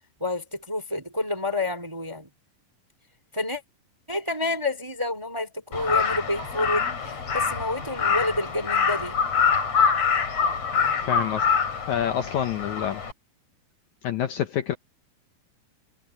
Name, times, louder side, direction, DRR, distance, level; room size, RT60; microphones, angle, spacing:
voice 1, 0.2-2.3 3.3-3.6 4.1-9.2, left 2 dB, 10° right, 1.8 m, -29 dB
Crow, 5.7-13.1, left 6 dB, 45° left, 5.0 m, -25 dB
voice 2, 11.0-11.5 11.9-13.0 14.0-14.7, left 10 dB, 70° left, 2.0 m, -27 dB
omnidirectional pair, 4.1 m